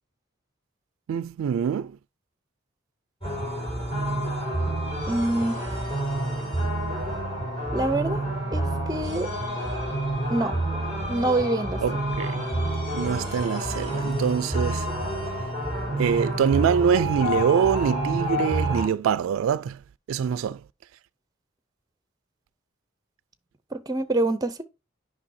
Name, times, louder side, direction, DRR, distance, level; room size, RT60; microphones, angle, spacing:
voice 1, 1.1-2.0 11.8-12.5 12.9-14.9 16.0-19.8 20.1-20.6, right 7 dB, 80° right, 0.3 m, -24 dB
sound 1, 3.2-18.9, right 1 dB, 30° left, 3.9 m, -28 dB
voice 2, 5.1-5.6 7.7-8.2 8.5-9.3 10.3-10.6 11.1-11.8 23.7-24.6, right 2 dB, 20° right, 0.5 m, -25 dB
9.8 x 5.4 x 2.7 m
head